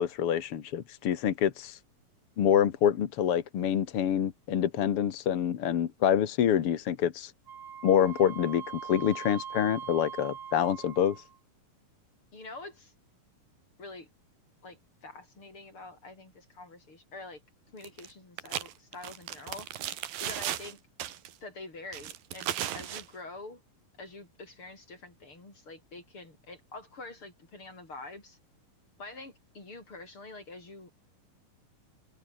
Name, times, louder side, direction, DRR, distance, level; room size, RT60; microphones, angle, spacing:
voice 1, 0.0-1.8 2.4-7.3 7.8-11.2, left 9 dB, 55° left, 1.8 m, -26 dB
Wind instrument woodwind instrument, 7.5-11.4, right 8 dB, 45° right, 2.1 m, -42 dB
voice 2, 12.3-12.9 13.8-14.1 14.6-17.4 17.7-19.8 20.2-20.8 21.4-23.6 24.0-28.4 29.0-30.9, left 2 dB, 35° left, 8.1 m, -46 dB
sound 1, 17.8-18.1 18.4-20.7 21.0-21.3 21.9-23.0, right 11 dB, 75° right, 3.4 m, -35 dB
omnidirectional pair, 4.2 m